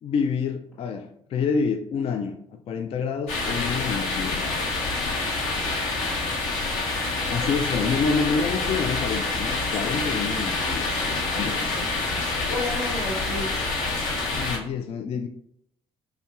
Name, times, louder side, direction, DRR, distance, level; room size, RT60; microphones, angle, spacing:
voice 1, 0.0-2.4 2.7-4.6 7.3-11.9 14.3-15.3, left 5 dB, 40° left, 5 dB, 0.3 m, -28 dB
sound 1, 3.3-14.6, left 3 dB, 60° left, 0.7 m, -27 dB
voice 2, 6.9-7.8 8.2-8.7 12.5-13.7, left 1 dB, 85° left, -7 dB, 1.1 m, -34 dB
4.2 x 2.8 x 2.3 m, 0.72 s
figure-of-eight pair, 45°, 15 cm